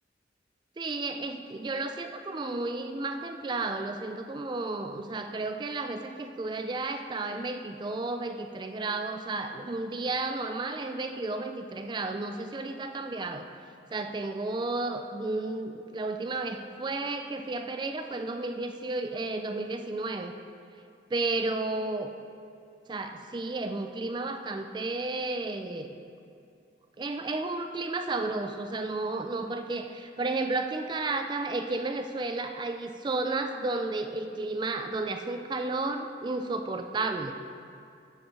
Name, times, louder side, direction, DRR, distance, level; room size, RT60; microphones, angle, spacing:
voice 1, 0.8-13.5 13.9-20.3 21.1-22.1 22.9-26.0 27.0-37.3, right 2 dB, 25° right, 6 dB, 0.3 m, -32 dB
9.0 x 5.3 x 4.6 m, 2.5 s
head